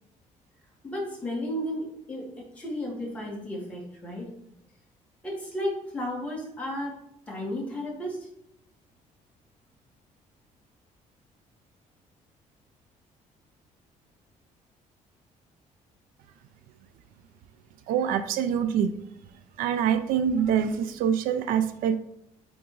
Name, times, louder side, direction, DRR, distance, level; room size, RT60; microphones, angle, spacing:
voice 1, 0.8-4.3 5.2-7.0 7.3-8.3, left 1 dB, 10° left, -4 dB, 1.8 m, -33 dB
voice 2, 17.9-18.9 19.6-22.0, right 8 dB, 85° right, 11 dB, 0.5 m, -25 dB
8.8 x 3.6 x 3.1 m, 0.76 s
cardioid pair, 170°, 14 cm